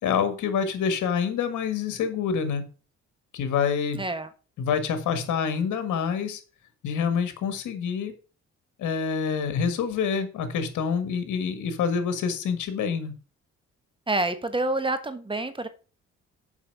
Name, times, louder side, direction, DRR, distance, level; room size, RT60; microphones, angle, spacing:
voice 1, 0.0-2.6 3.3-4.0 4.6-6.4 6.8-8.1 8.8-13.1, left 6 dB, 80° left, 9 dB, 1.8 m, -27 dB
voice 2, 3.9-4.3 14.1-15.7, right 2 dB, 15° right, 10 dB, 1.3 m, -27 dB
7.2 x 5.5 x 6.6 m, 0.36 s
cardioid pair, 90°, 30 cm